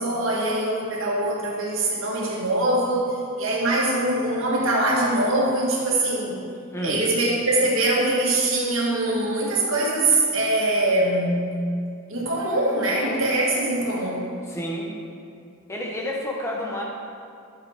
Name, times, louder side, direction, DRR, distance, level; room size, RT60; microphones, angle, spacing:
voice 1, 0.0-6.4 6.8-11.5 12.1-14.3, right 2 dB, 65° right, -3 dB, 2.1 m, -23 dB
voice 2, 14.5-14.9 15.7-16.8, left 1 dB, 15° left, -2 dB, 1.1 m, -29 dB
11.5 x 6.7 x 4.9 m, 2.4 s
head